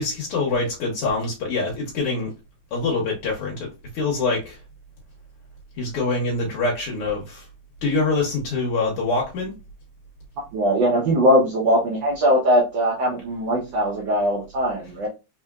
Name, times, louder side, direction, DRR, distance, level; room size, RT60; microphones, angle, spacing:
voice 1, 0.0-2.3 2.7-3.7 3.9-4.6 5.8-7.5 7.8-9.6, left 3 dB, 90° left, 1.9 m, -25 dB
voice 2, 10.5-15.1, equal, 60° right, 1.5 m, -20 dB
4.3 x 3.4 x 2.3 m
omnidirectional pair, 2.4 m